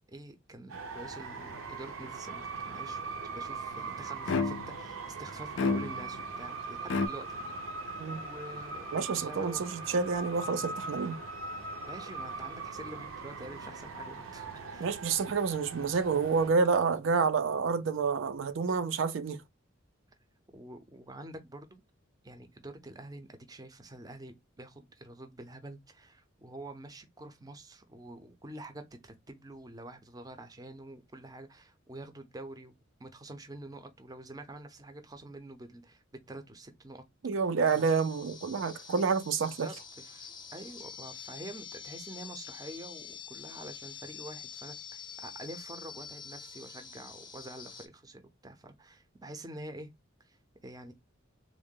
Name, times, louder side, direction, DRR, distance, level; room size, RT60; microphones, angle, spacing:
voice 1, 0.1-3.0 3.3-7.8 8.1-9.7 11.8-14.9 20.5-21.8 22.2-37.0 37.7-37.9 39.4-49.9 50.2-50.9, right 1 dB, 20° right, 0.5 m, -47 dB
sound 1, 0.7-16.5, right 3 dB, 90° right, 0.8 m, -41 dB
sound 2, 4.3-4.8 5.6-6.2 6.9-7.1, left 4 dB, 65° left, 0.4 m, -30 dB
voice 2, 8.9-11.2 14.8-19.4 37.2-39.7, right 5 dB, 70° right, 0.4 m, -29 dB
sound 3, 37.7-47.9, left 7 dB, 25° left, 0.6 m, -46 dB
3.6 x 2.1 x 3.6 m
head